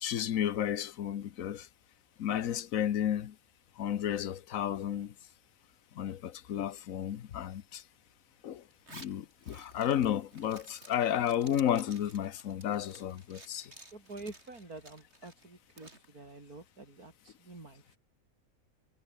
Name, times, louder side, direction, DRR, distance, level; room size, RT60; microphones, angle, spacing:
voice 1, 0.0-1.7 2.2-3.3 3.8-5.1 5.9-7.8 8.4-8.6 8.9-13.7, left 10 dB, 65° left, 1.3 m, -32 dB
Zipper (clothing), 8.7-16.1, right 1 dB, 45° right, 7.1 m, -54 dB
voice 2, 13.9-18.0, right 2 dB, 80° right, 5.6 m, -48 dB
omnidirectional pair, 1.5 m